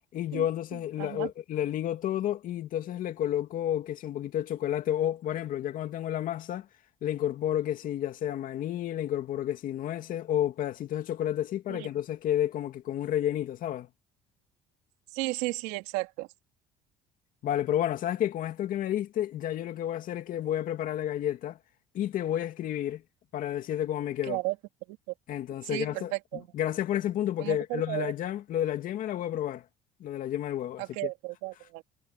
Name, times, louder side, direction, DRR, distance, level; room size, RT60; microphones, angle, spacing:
voice 1, 0.1-6.7 7.0-13.9 17.4-21.6 21.9-23.0 23.3-24.4 25.3-26.1 26.5-29.6 30.0-30.8, left 11 dB, 60° left, 2.4 m, -31 dB
voice 2, 1.0-1.3 11.7-11.9 15.1-16.3 24.2-24.6 24.9-25.1 25.7-26.5 27.4-28.1 30.8-31.8, right 22 dB, 90° right, 3.5 m, -34 dB
supercardioid pair, 90°, 16 cm